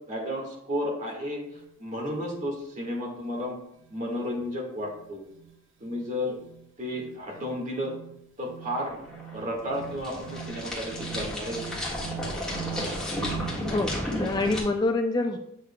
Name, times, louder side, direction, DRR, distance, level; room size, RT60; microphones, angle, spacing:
voice 1, 0.1-1.4 1.8-3.6 3.9-5.2 5.8-6.4 6.8-7.9 8.4-9.0 9.3-11.6 12.6-13.1, equal, 35° right, -1 dB, 1.7 m, -32 dB
sound 1, 1.4-1.7 2.1-2.4 2.8-3.0 3.3-3.4 3.8-13.6, right 14 dB, 65° right, 0.7 m, -44 dB
sound 2, 8.6-14.6, left 1 dB, 5° left, 1.5 m, -33 dB
voice 2, 13.7-15.4, left 2 dB, 20° left, 5 dB, 0.3 m, -26 dB
8.3 x 6.4 x 2.2 m, 0.79 s
head